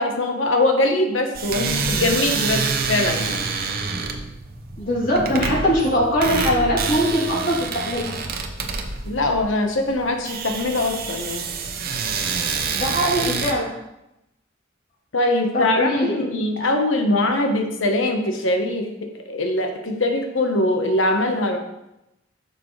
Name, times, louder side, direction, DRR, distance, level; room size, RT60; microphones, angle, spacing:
voice 1, 0.0-3.4 9.0-11.5 15.1-21.6, left 2 dB, 80° left, 4 dB, 1.2 m, -22 dB
sound 1, 1.3-13.5, right 4 dB, 50° right, 0.8 m, -27 dB
voice 2, 4.8-8.1 12.7-13.7 15.5-16.3, equal, 45° left, -5 dB, 3.1 m, -21 dB
9.4 x 6.8 x 3.3 m, 0.89 s
head